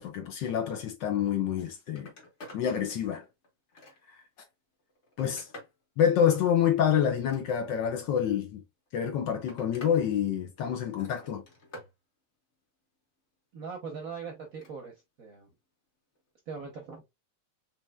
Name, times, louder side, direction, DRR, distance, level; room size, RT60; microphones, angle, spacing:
voice 1, 0.0-2.1 2.5-3.2 5.2-5.5 6.0-8.6 8.9-11.4, left 8 dB, 65° left, 1.2 m, -27 dB
Telephone, 1.4-1.6 1.9-2.7 3.1-4.2 4.8-5.8 7.1-7.9 8.9-10.0 10.3-10.8 11.2-11.9 14.4-14.8 16.2-16.3, left 1 dB, 35° left, 1.3 m, -49 dB
voice 2, 13.5-14.9 15.2-15.5 16.5-17.1, right 5 dB, 55° right, 1.0 m, -40 dB
4.3 x 3.3 x 2.2 m
omnidirectional pair, 2.4 m